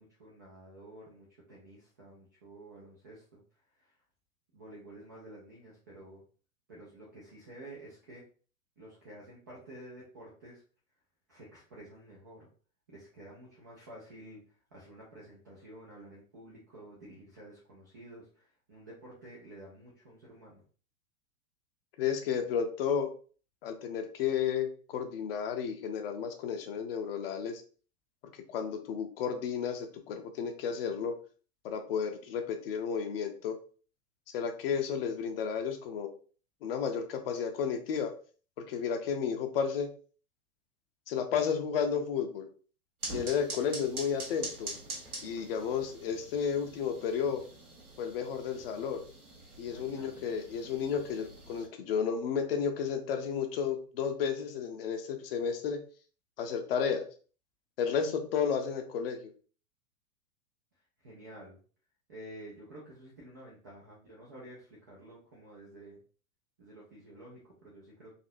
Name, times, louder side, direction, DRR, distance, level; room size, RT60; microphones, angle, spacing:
voice 1, 0.0-3.4 3.8-4.0 4.5-6.2 6.7-8.3 8.8-10.6 11.3-12.5 12.9-14.4 14.7-20.6 49.7-50.3 61.0-61.6 62.1-66.0 66.6-68.1, right 1 dB, 15° right, -5 dB, 0.3 m, -51 dB
voice 2, 22.0-23.1 23.6-27.6 28.5-31.1 31.6-33.6 34.3-36.1 36.6-38.1 38.7-39.9 41.1-42.5 43.1-44.7 45.2-47.4 48.0-49.0 49.6-55.8 56.4-57.0 57.8-59.3, left 7 dB, 40° left, 6 dB, 0.6 m, -32 dB
sound 1, 43.0-51.7, right 2 dB, 75° right, 1.4 m, -44 dB
4.1 x 2.7 x 2.5 m, 0.40 s
figure-of-eight pair, 100°, 45 cm